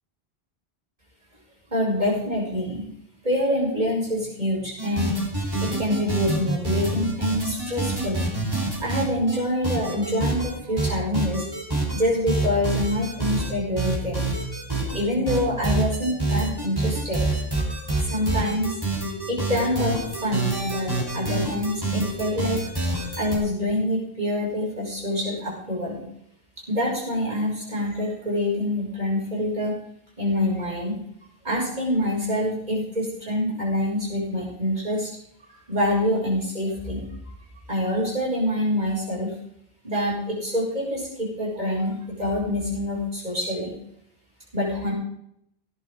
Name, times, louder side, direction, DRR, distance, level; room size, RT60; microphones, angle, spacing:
voice 1, 1.7-2.9 3.2-5.2 5.6-8.3 8.8-11.5 11.9-14.3 14.9-17.2 17.5-18.8 19.3-22.6 23.2-26.0 26.7-29.7 30.2-31.0 31.4-35.1 35.7-37.0 37.7-39.3 39.8-43.7 44.5-44.9, left 1 dB, 45° right, -5 dB, 6.9 m, -26 dB
sound 1, 4.8-9.4 9.6-10.5 10.8-12.0 12.3-13.5 13.8-15.0 15.3-23.4, right 2 dB, 20° right, 4.2 m, -26 dB
17.5 x 11.0 x 3.8 m, 0.73 s
omnidirectional pair, 1.0 m